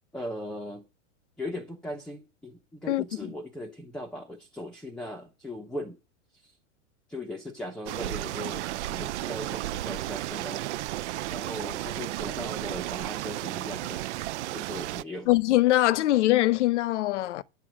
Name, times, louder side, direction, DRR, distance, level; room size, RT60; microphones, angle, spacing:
voice 1, 0.1-0.8 1.4-6.0 6.4-6.5 7.1-10.7 11.3-14.0 14.5-15.3, left 1 dB, ahead, 0.7 m, -38 dB
sound 1, 7.9-15.0, right 15 dB, 60° right, 0.6 m, -33 dB
voice 2, 15.3-17.4, left 16 dB, 65° left, 0.8 m, -22 dB
9.4 x 8.0 x 6.1 m
supercardioid pair, 160°, 38 cm